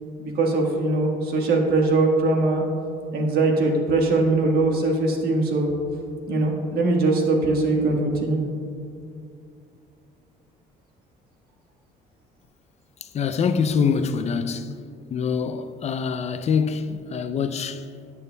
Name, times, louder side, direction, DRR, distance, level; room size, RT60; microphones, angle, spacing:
voice 1, 0.2-2.6 3.1-5.7 6.3-8.4, right 2 dB, 65° right, 1.4 m, -21 dB
voice 2, 13.0-14.7 15.1-17.9, left 6 dB, 40° left, 0.4 m, -25 dB
13.0 x 8.4 x 2.2 m
cardioid pair, 110°, 17 cm